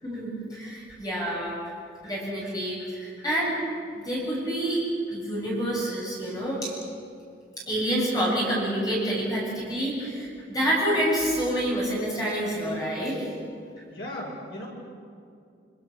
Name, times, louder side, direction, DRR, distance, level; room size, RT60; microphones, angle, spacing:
voice 1, 0.0-1.6 2.0-3.5 3.9-6.7 7.7-13.2, right 1 dB, 20° left, -5 dB, 7.8 m, -28 dB
voice 2, 13.9-14.7, left 1 dB, 65° left, -2 dB, 7.7 m, -36 dB
28.5 x 28.5 x 6.7 m, 2.4 s
head